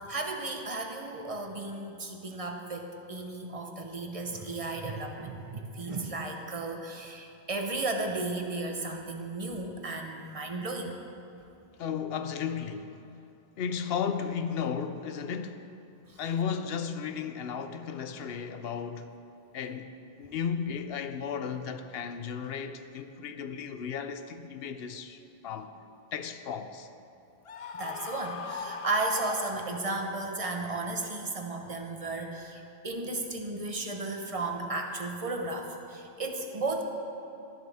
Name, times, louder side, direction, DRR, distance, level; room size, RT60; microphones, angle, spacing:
voice 1, 0.0-11.0 16.1-16.2 27.7-36.8, right 2 dB, 35° right, 0.9 m, -34 dB
voice 2, 11.8-13.0 13.6-15.7 16.2-19.1 19.5-19.9 20.2-25.7 26.1-26.9, left 7 dB, 75° left, 0.8 m, -34 dB
Screaming, 27.5-30.1, left 5 dB, 50° left, 0.4 m, -38 dB
12.5 x 11.0 x 3.5 m
omnidirectional pair, 1.1 m